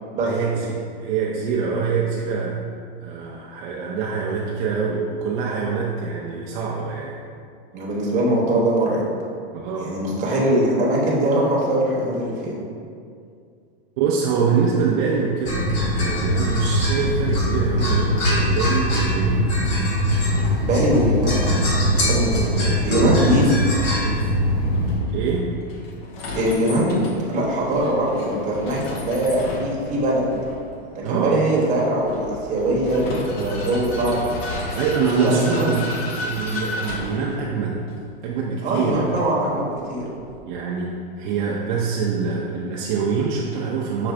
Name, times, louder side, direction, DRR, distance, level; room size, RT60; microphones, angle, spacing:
voice 1, 0.2-2.6 3.0-7.2 9.5-9.9 14.0-19.5 22.5-23.5 24.0-24.3 25.1-25.5 31.0-31.4 33.3-33.5 34.7-35.9 36.2-37.8 38.2-39.0 40.5-44.1, right 5 dB, 50° right, -3 dB, 0.5 m, -24 dB
voice 2, 7.7-9.1 9.8-12.6 20.6-22.5 22.8-23.4 26.4-27.0 27.3-30.3 30.9-34.2 35.2-35.8 38.6-40.1, right 1 dB, 25° right, -4 dB, 1.0 m, -22 dB
sound 1, 15.5-25.0, equal, 45° left, 1.4 m, -21 dB
Vehicle, 22.3-40.4, left 2 dB, 70° left, 0.9 m, -34 dB
5.9 x 2.5 x 3.2 m, 2.3 s
supercardioid pair, 135°, 31 cm